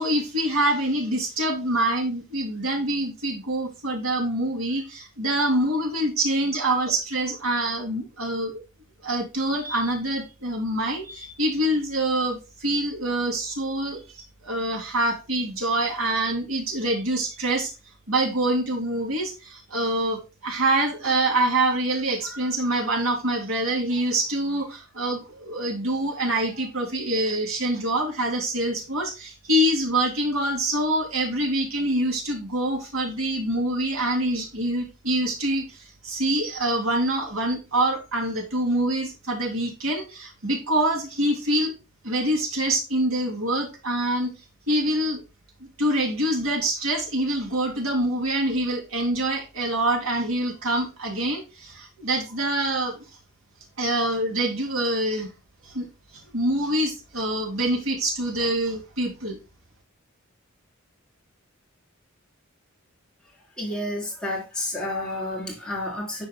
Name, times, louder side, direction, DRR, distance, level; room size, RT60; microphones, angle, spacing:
voice 1, 0.0-8.6 9.0-17.7 18.1-41.7 42.0-44.3 44.7-45.2 45.6-53.0 53.8-55.3 55.6-59.4, right 1 dB, 80° right, 3.1 m, -25 dB
voice 2, 63.6-66.3, left 1 dB, 5° left, 3.9 m, -30 dB
11.0 x 4.9 x 2.3 m
head